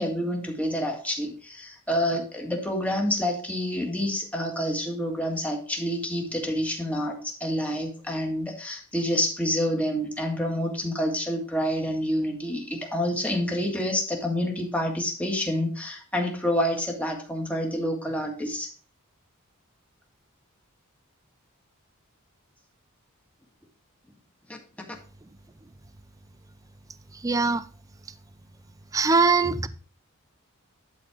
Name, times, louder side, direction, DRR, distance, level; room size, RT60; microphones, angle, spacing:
voice 1, 0.0-18.7 24.5-24.6 29.4-29.6, equal, 5° left, 1.8 m, -28 dB
voice 2, 27.2-27.7 28.9-29.7, right 4 dB, 15° right, 0.4 m, -21 dB
11.5 x 4.2 x 4.9 m
head